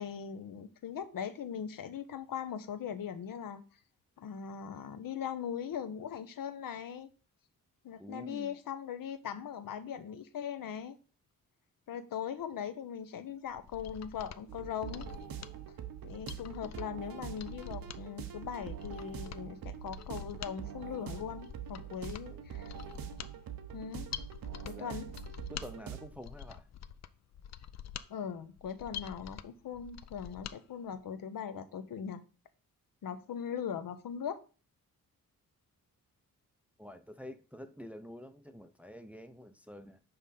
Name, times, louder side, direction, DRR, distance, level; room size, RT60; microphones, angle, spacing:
voice 1, 0.0-3.6 4.2-7.1 7.8-11.0 11.9-15.1 16.0-22.7 23.7-24.1 24.6-25.1 28.1-32.2 33.0-34.4, left 8 dB, 75° left, 0.7 m, -40 dB
voice 2, 8.0-8.6 22.3-22.4 24.7-25.0 25.5-26.7 36.8-40.0, equal, 5° right, 0.4 m, -48 dB
Mechanisms, 13.5-30.6 30.9-31.0, left 8 dB, 50° left, 0.4 m, -47 dB
sound 1, 14.5-26.1, right 10 dB, 85° right, 0.8 m, -44 dB
5.7 x 5.0 x 4.1 m
wide cardioid pair, 120°, 34 cm